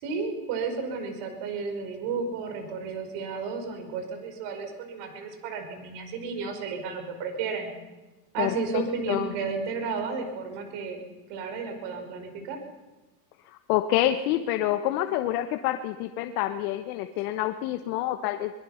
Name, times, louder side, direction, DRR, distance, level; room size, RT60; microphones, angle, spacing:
voice 1, 0.0-7.7 8.3-11.0 11.3-12.6, right 5 dB, 60° right, 5 dB, 5.4 m, -32 dB
voice 2, 8.4-8.8 9.1-9.3 13.5-18.5, left 13 dB, 70° left, 7 dB, 1.3 m, -27 dB
23.5 x 21.5 x 5.8 m, 1.1 s
supercardioid pair, 115°, 47 cm